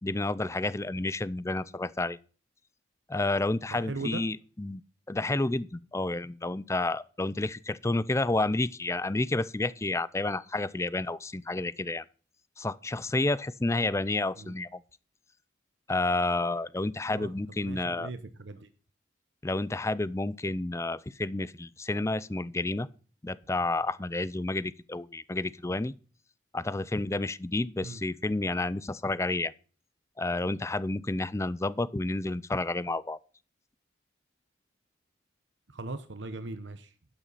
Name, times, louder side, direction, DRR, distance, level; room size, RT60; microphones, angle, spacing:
voice 1, 0.0-2.2 3.1-4.8 5.1-12.0 12.6-14.8 15.9-18.1 19.4-22.9 23.2-25.9 26.5-29.5 30.2-33.2, left 2 dB, 15° left, 0.4 m, -30 dB
voice 2, 3.7-4.2 14.4-14.5 17.1-18.7 27.8-28.0 35.7-36.9, right 3 dB, 70° right, 1.0 m, -39 dB
12.5 x 9.0 x 4.1 m
head